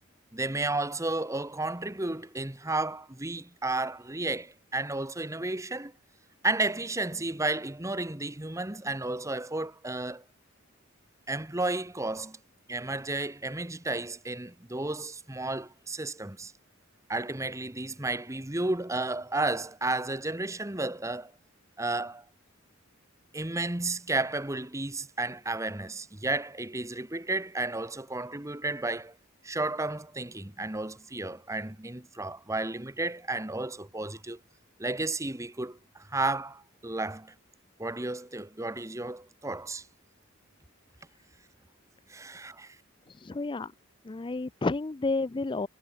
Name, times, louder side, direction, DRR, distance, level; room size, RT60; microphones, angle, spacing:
voice 1, 0.3-5.9 6.4-10.2 11.3-12.4 12.7-16.5 17.1-21.3 21.8-22.2 23.3-29.1 29.4-34.4 34.8-35.8 36.1-37.3 37.8-39.8 42.1-42.8, right 2 dB, 15° right, 1.1 m, -32 dB
voice 2, 43.1-43.7 44.0-45.7, left 3 dB, 25° left, 0.4 m, -31 dB
head